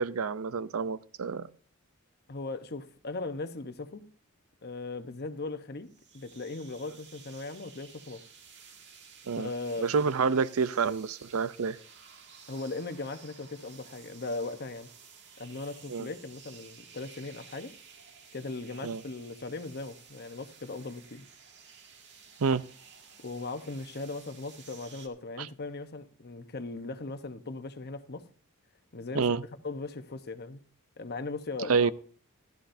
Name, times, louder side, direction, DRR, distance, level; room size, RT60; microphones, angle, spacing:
voice 1, 0.0-1.5 9.3-9.5 9.8-11.8 15.9-16.1 18.8-19.0 22.4-22.6 25.4-25.5 29.1-29.4 31.7-31.9, right 5 dB, 75° right, 0.5 m, -28 dB
voice 2, 2.3-4.0 4.6-5.9 6.1-8.2 9.4-10.0 12.5-14.9 15.4-17.7 18.3-21.2 23.2-28.2 28.9-29.4 29.6-30.6 31.0-31.9, left 3 dB, 50° left, 0.9 m, -38 dB
sound 1, 5.9-25.1, right 6 dB, 55° right, 1.9 m, -54 dB
16.0 x 13.5 x 2.7 m
head